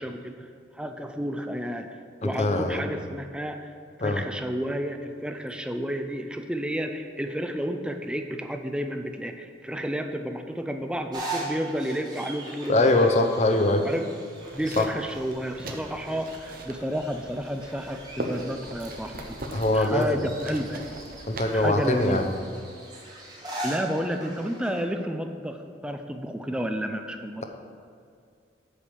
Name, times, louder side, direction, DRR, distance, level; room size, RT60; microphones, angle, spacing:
voice 1, 0.0-1.9 2.2-3.7 4.0-13.4 13.8-14.1 14.5-19.4 19.7-20.8 21.5-22.2 23.6-27.4, equal, 5° right, 6 dB, 0.4 m, -31 dB
voice 2, 2.2-2.9 4.0-4.2 12.7-13.9 14.8-14.9 19.5-20.1 21.3-22.3, left 2 dB, 35° left, 5 dB, 0.7 m, -22 dB
sound 1, 11.1-24.8, right 2 dB, 20° right, 1.3 m, -40 dB
sound 2, 14.3-22.4, right 1 dB, 50° right, 0.9 m, -40 dB
8.3 x 5.1 x 7.1 m, 2.3 s
head